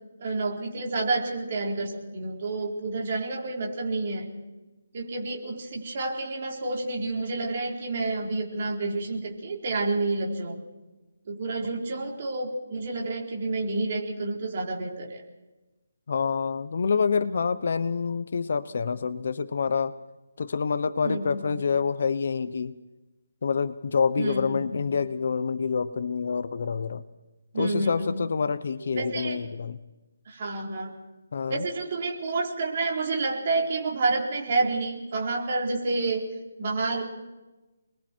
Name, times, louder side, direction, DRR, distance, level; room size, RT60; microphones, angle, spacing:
voice 1, 0.2-4.3 4.9-10.6 11.3-15.2 21.0-21.6 24.2-25.0 27.5-28.2 29.0-29.4 30.3-30.9 31.5-36.2 36.6-37.0, right 3 dB, 35° right, 0 dB, 4.1 m, -29 dB
voice 2, 16.1-20.0 20.4-22.7 23.4-27.0 27.5-29.8 31.3-31.7, left 5 dB, 50° left, 14 dB, 0.9 m, -27 dB
29.5 x 21.5 x 4.6 m, 1.1 s
hypercardioid pair, 175°, 0 cm